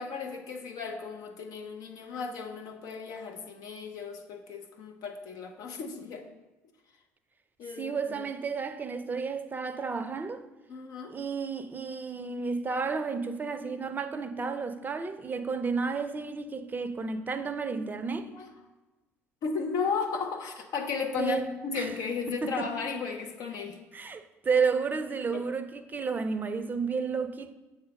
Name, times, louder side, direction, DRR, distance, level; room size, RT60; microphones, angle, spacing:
voice 1, 0.0-6.3 7.6-8.2 10.7-11.2 18.3-18.5 19.4-23.8 25.3-25.4, left 5 dB, 55° left, 1.0 m, -35 dB
voice 2, 7.8-10.4 11.1-18.3 21.2-21.9 22.3-22.7 23.9-27.5, right 5 dB, 25° right, 0.6 m, -32 dB
7.2 x 3.7 x 6.3 m
figure-of-eight pair, 55°, 7 cm